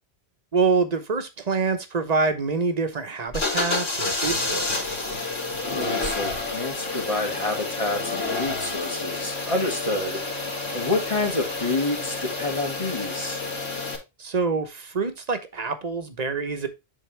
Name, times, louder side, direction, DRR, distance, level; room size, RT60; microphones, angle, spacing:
voice 1, 0.5-5.1 14.2-16.7, right 4 dB, 40° right, 1.0 m, -26 dB
sound 1, 3.3-14.0, left 3 dB, 80° left, 2.7 m, -29 dB
voice 2, 5.6-10.2 10.7-13.4, left 2 dB, 35° left, 1.9 m, -28 dB
10.5 x 3.8 x 3.3 m
omnidirectional pair, 1.0 m